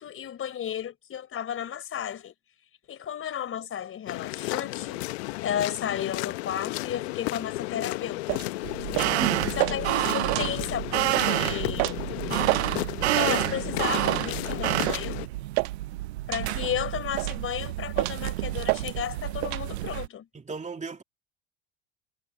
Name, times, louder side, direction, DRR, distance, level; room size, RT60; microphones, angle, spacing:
voice 1, 0.0-2.3 2.9-5.1 5.4-8.4 9.6-12.0 13.2-15.2 16.3-20.3, left 9 dB, 40° left, 4.3 m, -33 dB
sound 1, 4.1-15.3, left 22 dB, 75° left, 1.1 m, -33 dB
sound 2, 8.3-8.5 8.9-9.2 9.6-9.8 10.3-10.5 11.1-11.3 11.8-12.0 12.5-12.7 13.2-13.4 14.1-14.3 14.9-15.1 15.5-15.8 16.3-16.5 17.2-17.4 18.0-18.2 18.7-18.8 19.4-19.6, right 27 dB, 70° right, 1.3 m, -28 dB
sound 3, 8.6-20.1, right 16 dB, 85° right, 0.6 m, -29 dB
voice 2, 8.9-9.5 20.3-21.0, right 4 dB, 20° right, 2.7 m, -36 dB
hypercardioid pair, 75°, 32 cm